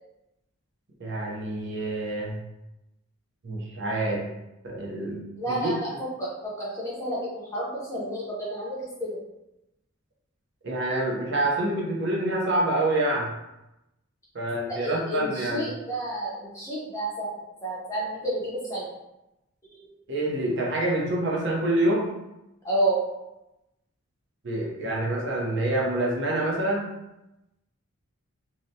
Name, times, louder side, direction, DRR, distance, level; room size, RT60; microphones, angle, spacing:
voice 1, 1.0-2.4 3.4-4.3 4.6-5.2 5.5-5.7 10.6-13.3 14.3-15.7 20.1-22.1 24.4-26.9, right 1 dB, 55° right, -2 dB, 0.6 m, -27 dB
voice 2, 5.4-5.9 6.2-6.3 6.6-9.2 14.7-17.3 17.6-18.9 22.6-23.0, right 1 dB, 15° left, -7 dB, 0.6 m, -30 dB
2.8 x 2.1 x 2.6 m, 0.92 s
head